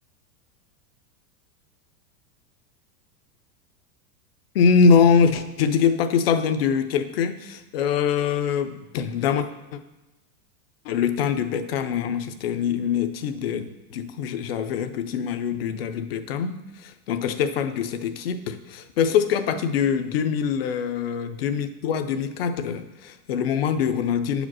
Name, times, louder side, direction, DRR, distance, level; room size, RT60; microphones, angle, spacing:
voice 1, 4.5-9.8 10.8-24.5, left 6 dB, 40° left, 10 dB, 0.5 m, -23 dB
8.6 x 5.0 x 6.1 m, 1.0 s
supercardioid pair, 180°, 47 cm